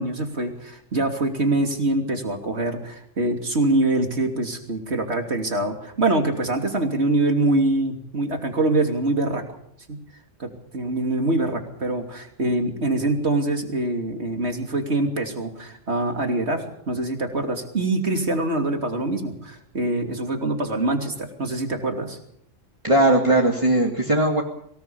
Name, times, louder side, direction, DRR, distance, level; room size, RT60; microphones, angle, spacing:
voice 1, 0.0-9.6 9.9-10.0 10.4-22.2, right 2 dB, 60° right, 4 dB, 3.3 m, -24 dB
voice 2, 22.8-24.4, right 1 dB, 25° right, 1 dB, 2.3 m, -18 dB
24.0 x 18.0 x 7.1 m, 0.70 s
omnidirectional pair, 1.3 m